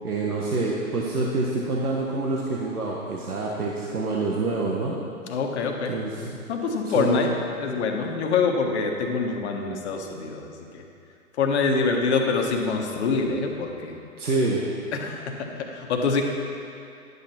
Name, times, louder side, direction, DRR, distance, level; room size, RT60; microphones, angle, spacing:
voice 1, 0.0-5.0 5.9-6.3 6.9-7.3 14.2-14.8, right 3 dB, 90° right, -3 dB, 1.3 m, -26 dB
voice 2, 5.3-5.9 6.5-7.3 7.5-10.8 11.4-13.9 14.9-16.2, left 4 dB, 50° left, 2 dB, 1.4 m, -25 dB
11.0 x 8.3 x 4.4 m, 2.5 s
hypercardioid pair, 130°, 43 cm